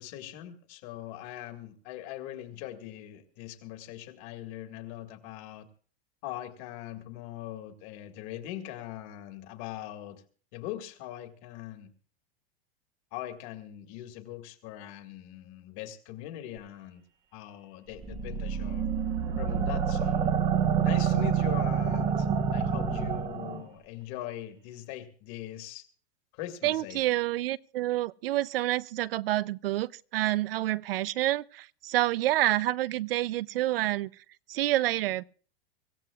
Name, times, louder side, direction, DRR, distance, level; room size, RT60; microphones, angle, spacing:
voice 1, 0.0-5.7 6.2-10.2 10.5-11.9 13.1-17.0 17.3-18.9 19.4-20.3 20.8-25.9 26.3-27.0, left 13 dB, 35° left, 1.8 m, -41 dB
sound 1, 18.0-23.6, right 7 dB, 20° right, 1.0 m, -27 dB
voice 2, 26.6-34.1 34.5-35.2, right 15 dB, 70° right, 0.6 m, -28 dB
25.0 x 15.5 x 2.3 m
supercardioid pair, 175°, 30 cm